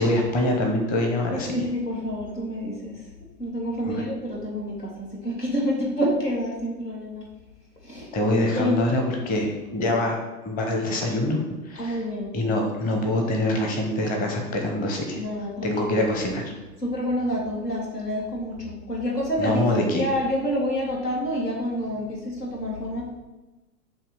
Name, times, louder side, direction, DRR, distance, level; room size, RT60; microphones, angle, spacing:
voice 1, 0.0-1.5 3.8-4.0 8.1-10.2 10.4-12.0 12.3-15.2 15.6-16.5 19.4-20.1, left 1 dB, 20° left, 1 dB, 0.8 m, -24 dB
voice 2, 1.3-3.0 3.4-7.2 7.8-8.1 8.5-8.8 11.8-12.3 15.2-16.1 16.8-19.6 19.9-23.1, equal, 85° left, -3 dB, 1.9 m, -28 dB
7.1 x 2.8 x 5.4 m, 1.1 s
figure-of-eight pair, 100°, 46 cm